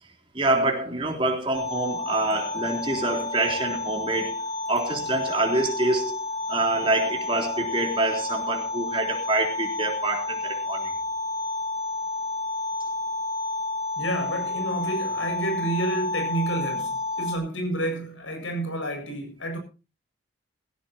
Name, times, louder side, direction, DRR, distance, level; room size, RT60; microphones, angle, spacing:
voice 1, 0.3-6.2 6.5-10.9, right 2 dB, 25° right, 3.6 m, -26 dB
sound 1, 1.5-17.4, left 2 dB, 30° left, 7.3 m, -30 dB
voice 2, 14.0-19.6, right 1 dB, 80° left, 7.6 m, -30 dB
18.0 x 16.0 x 3.0 m
head